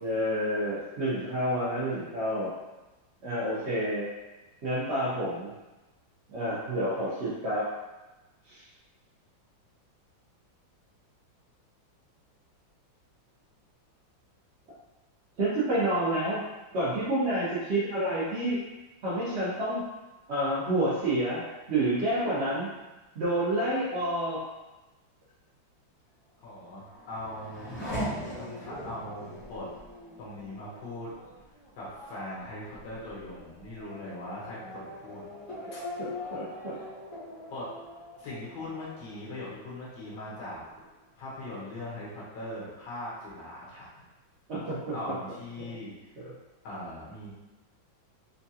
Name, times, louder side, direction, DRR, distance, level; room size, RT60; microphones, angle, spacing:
voice 1, 0.0-2.5 3.2-4.1 4.6-5.5 6.3-7.7 8.5-8.6 15.4-16.4 16.7-18.6 19.0-19.8 20.3-21.4 21.7-22.7 23.2-24.4 36.0-36.8 44.5-44.9 45.6-45.7, right 1 dB, 65° right, -10 dB, 0.6 m, -29 dB
voice 2, 26.4-27.7 28.3-29.7 30.2-31.1 31.8-35.2 37.5-37.7 38.2-40.6 41.2-43.9 44.9-45.9 46.6-47.3, left 1 dB, 70° left, -8 dB, 1.7 m, -40 dB
Race car auto racing / Accelerating revving vroom, 26.4-39.6 40.0-40.7, left 1 dB, 40° left, 1.1 m, -41 dB
4.4 x 2.3 x 2.7 m, 1.1 s
omnidirectional pair, 2.1 m